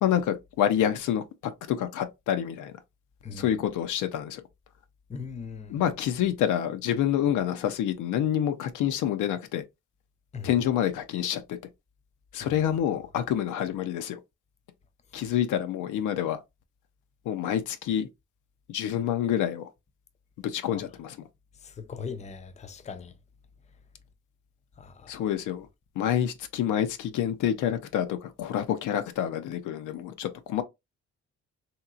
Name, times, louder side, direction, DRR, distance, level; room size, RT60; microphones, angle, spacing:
voice 1, 0.0-2.7 3.3-4.4 5.7-9.6 10.4-11.6 12.3-14.2 15.1-16.4 17.3-18.1 18.7-19.7 20.4-21.2 25.1-25.7 26.0-30.6, left 10 dB, 80° left, 0.6 m, -27 dB
voice 2, 5.1-5.8 10.3-10.5 12.4-12.6 20.7-20.8 21.6-23.1 24.8-25.3, left 5 dB, 25° left, 0.5 m, -40 dB
2.9 x 2.8 x 2.4 m
cardioid pair, 90°, 30 cm